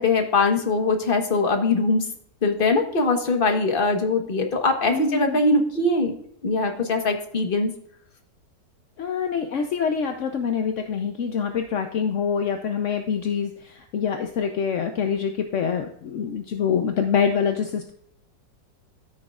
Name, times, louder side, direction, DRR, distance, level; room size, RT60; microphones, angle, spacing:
voice 1, 0.0-2.1 2.4-6.1 6.4-7.7, left 3 dB, 35° left, 4 dB, 1.2 m, -22 dB
voice 2, 4.9-5.4 9.0-17.9, left 7 dB, 60° left, 5 dB, 0.8 m, -25 dB
14.0 x 6.4 x 2.4 m, 0.69 s
omnidirectional pair, 2.0 m